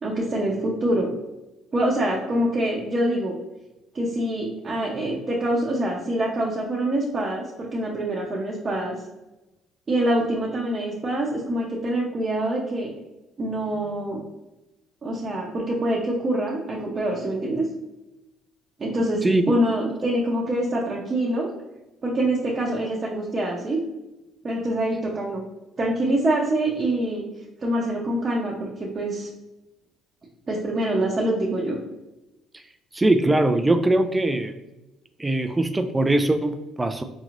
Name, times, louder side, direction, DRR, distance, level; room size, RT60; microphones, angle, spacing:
voice 1, 0.0-1.1 1.7-3.3 3.9-9.0 9.9-12.9 13.4-14.2 15.0-17.7 18.8-21.5 22.0-23.8 24.4-25.4 25.8-27.2 27.6-29.3 30.5-31.8, right 1 dB, 35° right, -4 dB, 0.7 m, -25 dB
voice 2, 32.9-34.5 35.2-37.0, right 2 dB, 15° right, 7 dB, 0.3 m, -21 dB
4.0 x 2.9 x 2.5 m, 1.0 s
supercardioid pair, 65°, 0 cm